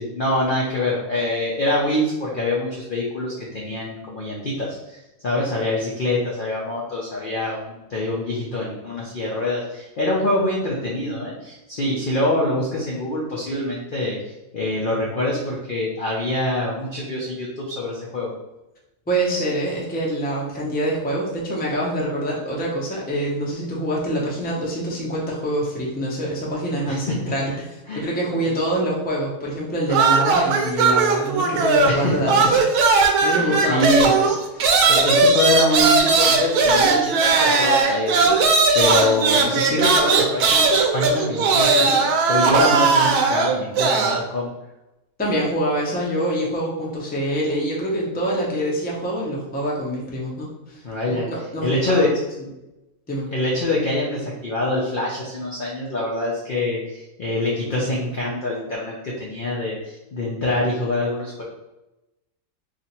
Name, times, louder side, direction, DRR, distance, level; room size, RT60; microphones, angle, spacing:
voice 1, 0.0-14.2 14.5-18.3 26.9-27.6 27.9-28.0 31.8-32.5 33.3-34.1 34.9-38.4 38.7-41.9 42.3-44.5 50.8-51.3 51.6-52.1 53.3-61.4, left 1 dB, 65° left, -4 dB, 0.5 m, -25 dB
voice 2, 19.1-32.6 33.2-34.3 34.6-34.9 45.2-52.1 52.4-52.5 53.1-53.3, right 1 dB, 10° left, -4 dB, 0.4 m, -25 dB
sound 1, 29.9-32.0 32.3-44.2, right 4 dB, 75° right, 1.1 m, -18 dB
2.8 x 2.5 x 4.2 m, 0.98 s
omnidirectional pair, 1.7 m